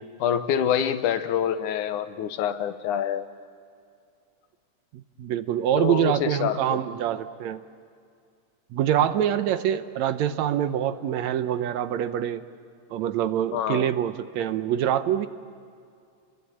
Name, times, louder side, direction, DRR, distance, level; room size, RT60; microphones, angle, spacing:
voice 1, 0.2-3.3 5.8-6.8 13.5-13.9, left 9 dB, 85° left, 10 dB, 2.5 m, -26 dB
voice 2, 4.9-7.6 8.7-12.4 12.9-15.3, right 10 dB, 75° right, 11 dB, 2.0 m, -25 dB
29.5 x 22.0 x 8.5 m, 2.3 s
omnidirectional pair, 3.4 m